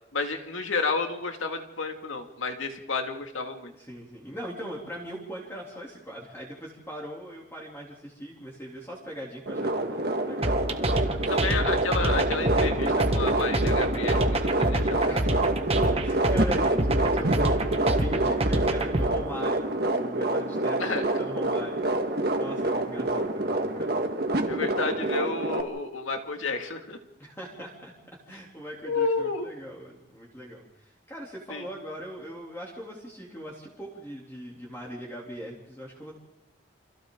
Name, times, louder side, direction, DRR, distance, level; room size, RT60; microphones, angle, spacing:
voice 1, 0.1-3.7 11.3-15.4 20.8-21.0 24.5-27.0 28.8-29.5 31.5-31.6, left 3 dB, 85° left, 4 dB, 2.3 m, -31 dB
voice 2, 3.8-11.6 15.1-24.1 24.7-24.8 27.2-27.9 28.3-36.1, equal, 15° left, -3 dB, 3.1 m, -41 dB
sound 1, 9.5-25.6, right 2 dB, 50° right, 1.7 m, -27 dB
sound 2, 10.4-19.1, right 1 dB, 30° right, 1.4 m, -26 dB
29.0 x 25.5 x 3.9 m, 0.91 s
head